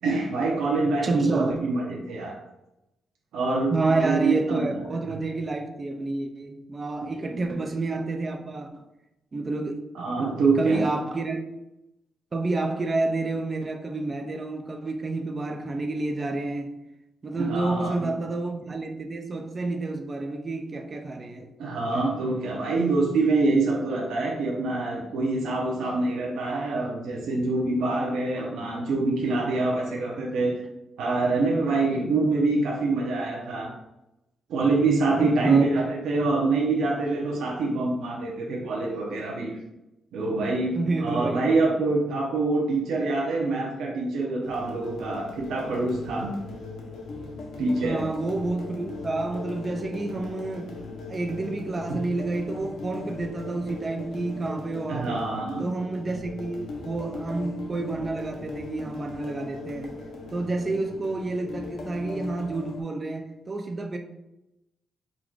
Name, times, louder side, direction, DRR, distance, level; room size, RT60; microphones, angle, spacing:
voice 1, 0.0-2.4 3.3-4.7 7.0-7.5 9.9-10.8 17.3-18.1 21.6-30.5 31.0-33.7 34.5-39.5 40.1-46.3 47.6-48.0 51.9-52.0 54.9-55.6, right 3 dB, 85° right, 0.8 m, -25 dB
voice 2, 1.0-1.7 3.7-8.8 9.3-11.4 12.3-16.8 17.2-21.5 35.2-35.6 40.8-41.4 47.8-55.2 55.6-60.0 60.3-64.0, right 2 dB, 25° right, 0.3 m, -29 dB
sound 1, 44.4-62.8, left 3 dB, 75° left, 0.9 m, -39 dB
3.8 x 2.4 x 4.5 m
wide cardioid pair, 170°, 0 cm